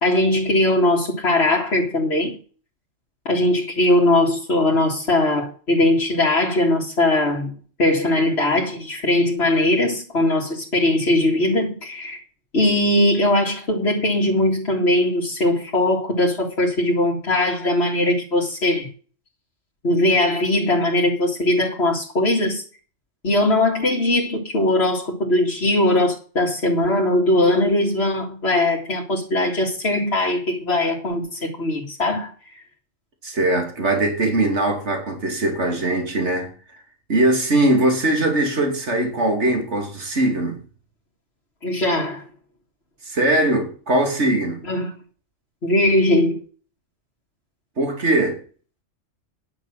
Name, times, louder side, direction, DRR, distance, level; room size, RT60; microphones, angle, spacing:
voice 1, 0.0-2.4 3.3-12.2 12.5-18.9 19.8-22.6 23.2-32.3 41.6-42.2 44.7-44.9 45.6-46.4, left 1 dB, 55° left, 2.3 m, -20 dB
voice 2, 33.2-36.5 37.1-40.6 43.0-44.6 47.8-48.4, right 1 dB, 60° right, 3.0 m, -21 dB
10.5 x 6.1 x 7.4 m
omnidirectional pair, 1.3 m